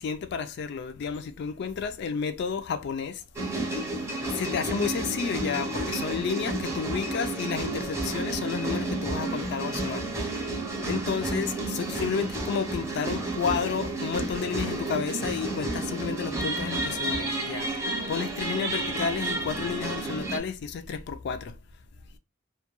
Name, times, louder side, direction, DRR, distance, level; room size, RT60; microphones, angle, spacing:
voice 1, 0.0-3.2 4.4-10.1 10.8-21.5, left 6 dB, 55° left, 0.3 m, -31 dB
sound 1, 3.4-20.4, right 2 dB, 15° right, 0.5 m, -31 dB
2.2 x 2.2 x 2.9 m
head